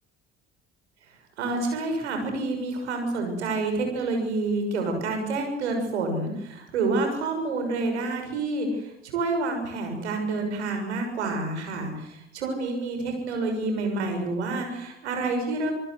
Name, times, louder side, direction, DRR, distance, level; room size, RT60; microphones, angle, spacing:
voice 1, 1.4-15.7, right 3 dB, 75° right, 4 dB, 6.6 m, -28 dB
27.0 x 19.5 x 7.9 m, 0.78 s
figure-of-eight pair, 55°, 34 cm